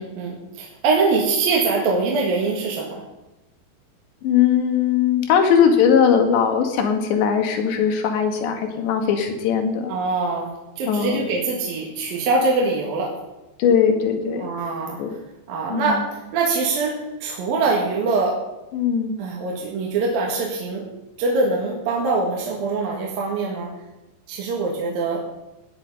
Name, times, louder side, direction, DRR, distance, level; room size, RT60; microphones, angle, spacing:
voice 1, 0.0-3.0 9.9-13.2 14.4-15.0 15.5-18.4 19.2-20.9 21.2-23.7 24.3-25.3, right 3 dB, 60° right, -2 dB, 3.4 m, -23 dB
voice 2, 4.2-9.9 10.9-11.3 13.6-14.5 15.0-15.1 15.7-16.0 18.7-19.2, left 7 dB, 85° left, 5 dB, 4.0 m, -19 dB
17.0 x 10.0 x 5.5 m, 1.0 s
omnidirectional pair, 5.0 m